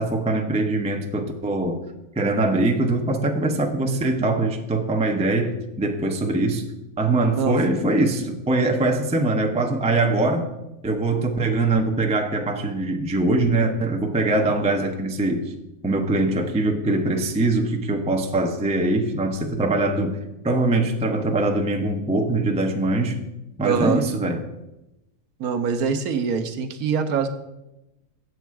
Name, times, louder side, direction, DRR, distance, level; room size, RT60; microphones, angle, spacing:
voice 1, 0.0-1.8 2.2-6.6 7.0-10.4 10.8-15.5 15.8-20.2 20.4-23.2 23.6-24.4, right 2 dB, 10° right, 3 dB, 0.4 m, -22 dB
voice 2, 23.6-24.1 25.4-27.3, right 6 dB, 70° right, 8 dB, 1.2 m, -23 dB
7.9 x 7.4 x 4.6 m, 0.93 s
omnidirectional pair, 1.6 m